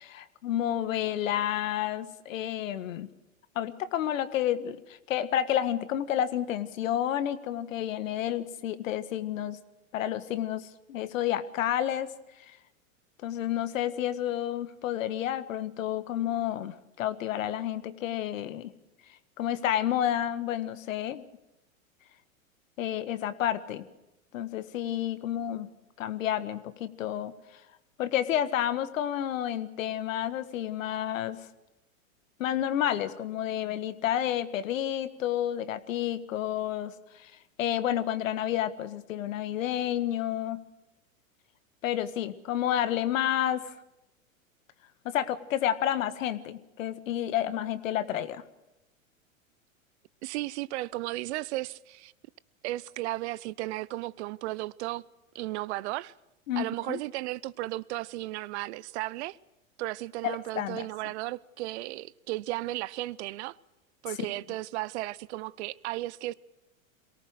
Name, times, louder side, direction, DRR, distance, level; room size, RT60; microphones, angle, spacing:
voice 1, 0.0-3.1 3.5-9.6 9.9-12.1 12.5-12.6 13.2-18.7 19.4-21.2 22.8-23.9 24.3-25.7 26.0-27.3 28.0-31.5 32.4-37.3 37.6-40.6 41.8-43.7 45.0-48.4 56.5-57.0 60.2-60.8, left 11 dB, 70° left, 1.7 m, -30 dB
voice 2, 50.2-52.1 52.6-55.0 55.3-56.1 56.6-59.4 59.8-63.6 64.0-66.3, right 18 dB, 55° right, 0.7 m, -34 dB
23.0 x 18.5 x 6.4 m
hypercardioid pair, 110°, 41 cm